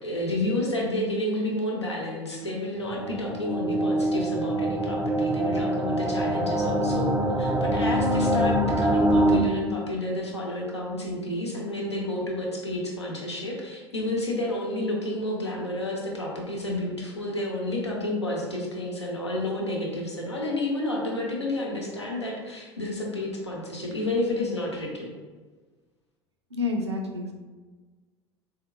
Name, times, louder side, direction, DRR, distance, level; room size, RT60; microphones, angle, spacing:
voice 1, 0.0-25.2, left 1 dB, 85° left, -2 dB, 0.6 m, -30 dB
sound 1, 2.4-9.4, right 1 dB, 10° right, 0.4 m, -25 dB
voice 2, 26.5-27.3, left 3 dB, 85° right, 2 dB, 0.4 m, -29 dB
3.3 x 2.8 x 2.3 m, 1.3 s
figure-of-eight pair, 75°, 14 cm